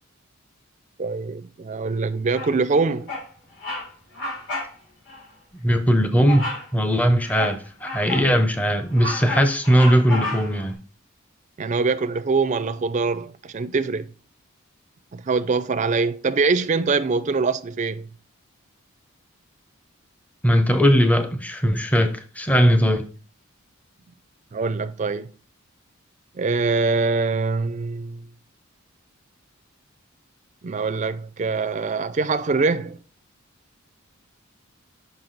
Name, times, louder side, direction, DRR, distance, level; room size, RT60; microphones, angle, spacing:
voice 1, 1.0-3.1 11.6-14.1 15.1-18.1 24.5-25.3 26.3-28.3 30.6-33.0, right 4 dB, 35° right, 0.4 m, -23 dB
Bird vocalization bird call bird song, 2.3-2.7 3.1-3.3 3.6-3.9 4.1-4.7 5.1-5.2 6.3-6.7 7.2-8.3 8.7-10.7, left 2 dB, 55° left, 2.9 m, -31 dB
voice 2, 5.6-6.5 6.7-10.8 20.4-23.1, equal, 5° left, 0.6 m, -19 dB
5.9 x 5.6 x 3.9 m
head